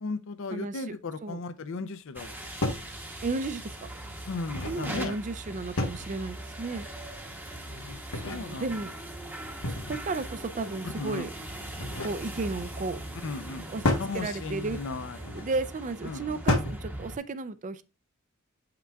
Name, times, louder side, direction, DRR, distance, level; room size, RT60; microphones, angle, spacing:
voice 1, 0.0-2.4 4.3-5.2 7.6-8.9 10.8-11.3 13.2-13.6 14.0-15.2 16.0-16.4, left 3 dB, 60° left, 0.5 m, -36 dB
voice 2, 0.5-0.9 1.2-1.4 3.2-3.7 4.6-6.9 8.1-8.9 9.9-11.3 12.0-13.0 13.7-13.8 14.1-14.8 15.2-17.8, right 3 dB, 35° right, 0.4 m, -33 dB
sound 1, 2.1-17.2, right 1 dB, 10° right, 0.9 m, -40 dB
sound 2, 2.2-2.3 2.6-2.9 4.3-4.8 5.7-6.2 7.9-8.4 9.6-10.1 11.6-12.2 13.8-14.1 15.2-15.5 16.5-16.8, left 2 dB, 75° left, 1.2 m, -30 dB
7.5 x 5.8 x 2.3 m
head